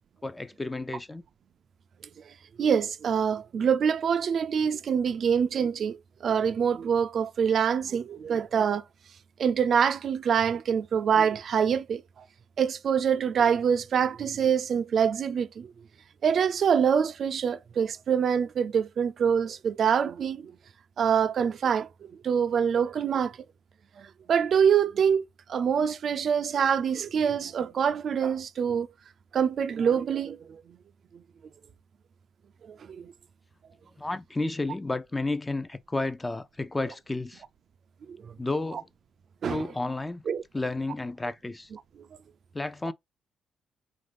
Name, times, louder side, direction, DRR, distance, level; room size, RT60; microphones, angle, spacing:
voice 1, 0.2-1.2 34.0-37.4 38.4-38.9 39.5-40.2 40.5-41.7 42.5-42.9, left 2 dB, 15° left, 0.4 m, -31 dB
voice 2, 2.6-8.8 9.4-12.0 12.6-15.7 16.2-20.5 21.0-21.9 22.2-23.4 24.0-28.9 29.3-30.6 32.6-33.1 38.1-38.3 38.7-38.8 39.4-39.6 40.3-40.4, right 7 dB, 55° right, 0.4 m, -25 dB
4.3 x 2.6 x 3.3 m
cardioid pair, 90°, 0 cm